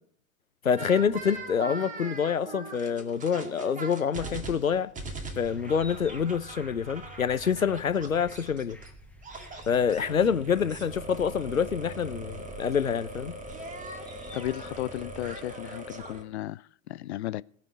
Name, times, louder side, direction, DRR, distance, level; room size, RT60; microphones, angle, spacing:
voice 1, 0.6-4.9 5.4-8.8 9.7-13.4, left 7 dB, 85° left, 0.8 m, -27 dB
sound 1, 0.8-8.9 9.2-16.2, right 2 dB, 20° right, 2.2 m, -41 dB
sound 2, 5.0-15.3, right 2 dB, 5° left, 1.5 m, -48 dB
voice 2, 14.3-17.4, left 14 dB, 55° left, 0.5 m, -35 dB
18.0 x 6.1 x 9.6 m
figure-of-eight pair, 90°, 40 cm